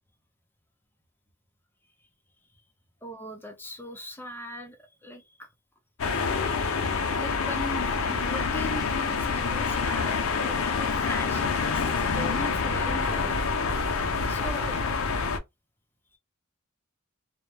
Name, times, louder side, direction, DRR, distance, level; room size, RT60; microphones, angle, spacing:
voice 1, 3.0-5.5 7.2-13.5 14.3-14.8, left 1 dB, 10° left, 0.6 m, -39 dB
sound 1, 6.0-15.4, left 5 dB, 70° left, 0.5 m, -27 dB
2.1 x 2.1 x 3.1 m
head